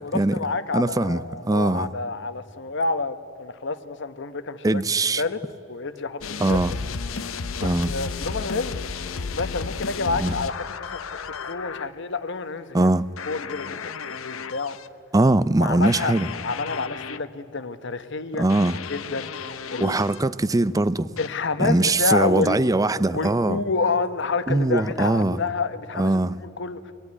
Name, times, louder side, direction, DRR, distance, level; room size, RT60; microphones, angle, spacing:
voice 1, 0.0-4.8 5.2-5.4 5.7-6.6 7.6-8.9 9.3-12.8 13.3-14.8 15.6-16.1 16.4-18.5 18.9-20.0 21.2-22.6 23.1-26.2 26.6-26.8, left 4 dB, 60° left, 1.0 m, -28 dB
voice 2, 0.7-1.9 4.6-5.2 6.4-6.7 7.6-7.9 10.2-10.4 12.7-13.1 15.1-16.3 18.4-18.8 19.8-21.1 21.6-23.6 24.5-25.4 25.9-26.4, right 2 dB, 15° right, 0.5 m, -21 dB
sound 1, 6.2-11.9 13.2-14.9 15.8-17.2 18.5-20.2 21.2-21.3, left 5 dB, 85° left, 0.8 m, -33 dB
23.5 x 21.0 x 9.6 m
head